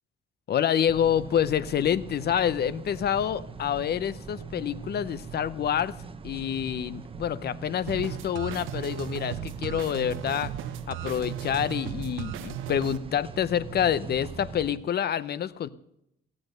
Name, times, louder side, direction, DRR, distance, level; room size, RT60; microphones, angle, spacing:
voice 1, 0.5-5.9 6.2-10.5 10.9-15.7, left 9 dB, 55° left, 18 dB, 0.7 m, -27 dB
sound 1, 0.9-14.8, right 4 dB, 30° right, 0.9 m, -41 dB
sound 2, 7.9-13.0, right 12 dB, 80° right, 0.6 m, -36 dB
15.0 x 8.6 x 6.5 m, 0.80 s
cardioid pair, 90°, 20 cm